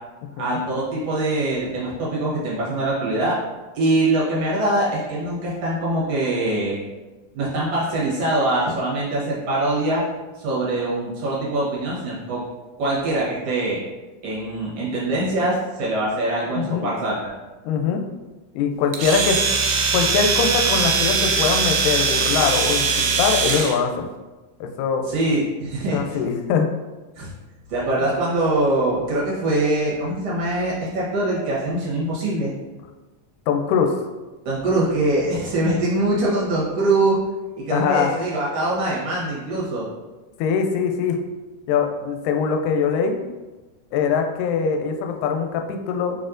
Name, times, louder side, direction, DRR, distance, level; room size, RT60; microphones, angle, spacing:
voice 1, 0.4-3.4 3.8-6.8 7.3-10.0 10.4-12.4 12.8-13.8 14.2-17.3 25.1-26.2 27.2-27.3 27.7-32.5 34.5-37.2 37.5-39.8, right 2 dB, 60° right, -7 dB, 1.8 m, -23 dB
voice 2, 16.6-16.9 17.6-18.0 18.5-19.5 19.9-24.1 24.6-25.1 25.9-26.7 33.5-34.0 37.7-38.1 40.4-41.2 41.7-43.2 43.9-46.2, left 6 dB, 85° left, 4 dB, 2.2 m, -22 dB
Domestic sounds home sounds, 18.9-23.8, right 5 dB, 80° right, 2.0 m, -21 dB
4.7 x 4.2 x 2.5 m, 1.2 s
omnidirectional pair, 3.8 m